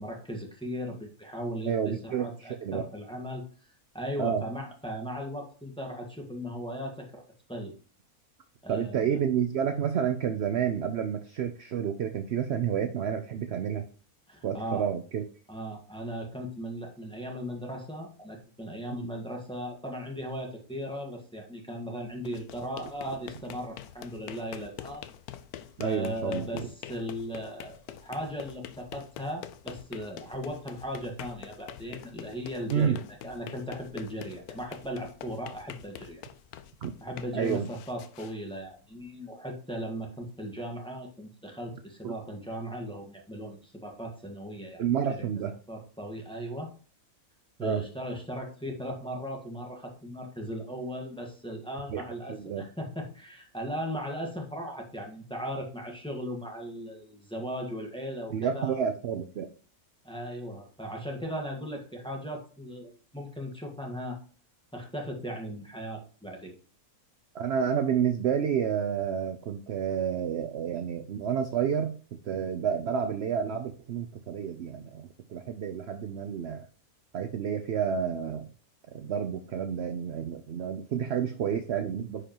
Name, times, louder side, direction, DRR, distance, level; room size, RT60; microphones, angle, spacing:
voice 1, 0.0-3.4 3.9-7.2 7.5-7.7 8.6-9.2 14.3-14.9 15.5-25.0 25.8-33.0 33.2-36.2 37.0-44.8 45.1-45.3 45.7-46.7 47.6-58.8 60.0-64.2 64.7-66.5, equal, 5° left, 0 dB, 1.4 m, -37 dB
voice 2, 1.7-2.9 4.2-4.4 8.7-13.9 14.4-15.2 19.0-19.1 25.8-26.5 32.7-33.0 36.8-36.9 37.3-37.7 42.0-42.2 44.8-45.5 47.6-47.8 51.9-52.0 52.3-52.6 58.3-59.5 67.3-76.7 77.1-78.5 78.9-82.2, right 8 dB, 60° right, 8 dB, 0.7 m, -30 dB
sound 1, 22.1-39.1, left 11 dB, 90° left, 1.1 m, -46 dB
10.0 x 5.0 x 2.9 m, 0.40 s
omnidirectional pair, 1.6 m